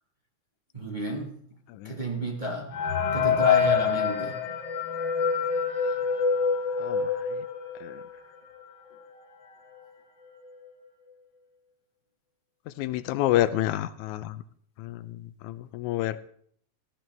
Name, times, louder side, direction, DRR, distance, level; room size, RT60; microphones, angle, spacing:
voice 1, 0.7-1.5 1.8-4.4, right 1 dB, 20° right, -1 dB, 1.5 m, -32 dB
sound 1, 2.7-8.2 8.6-8.7 8.9-9.1 9.8-9.9 10.3-10.6, left 6 dB, 55° left, 1.3 m, -26 dB
voice 2, 6.8-7.3 7.8-8.0 12.7-14.4 14.8-16.2, left 14 dB, 85° left, 15 dB, 2.1 m, -29 dB
15.5 x 13.0 x 3.4 m, 0.62 s
omnidirectional pair, 3.3 m